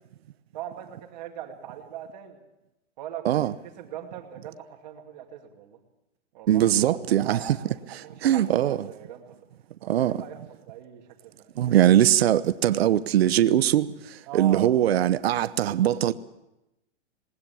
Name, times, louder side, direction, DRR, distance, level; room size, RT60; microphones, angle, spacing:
voice 1, 0.5-2.4 3.0-3.5 3.8-5.8 6.3-9.5 9.8-10.4 10.7-11.5 14.3-14.8, right 10 dB, 40° right, 2.4 m, -40 dB
voice 2, 6.5-7.6 8.2-8.9 9.9-10.2 11.6-13.9 14.3-16.1, right 11 dB, 60° right, 0.8 m, -21 dB
19.5 x 19.5 x 7.0 m
hypercardioid pair, 170°, 35 cm